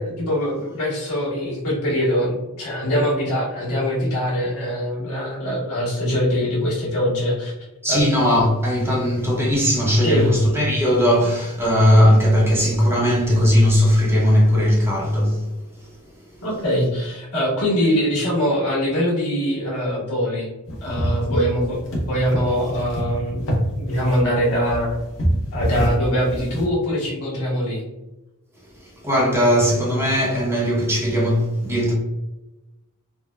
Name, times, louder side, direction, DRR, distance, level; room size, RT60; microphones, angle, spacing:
voice 1, 0.0-7.5 7.9-8.0 10.0-10.3 16.4-20.5 20.8-21.8 22.1-23.4 23.8-24.9 25.5-27.8, equal, 80° left, 1.3 m, -23 dB
voice 2, 7.8-15.4 29.0-31.9, equal, 10° right, 0.7 m, -18 dB
sound 1, 20.7-26.6, equal, 60° left, 0.8 m, -25 dB
3.7 x 2.1 x 2.2 m
head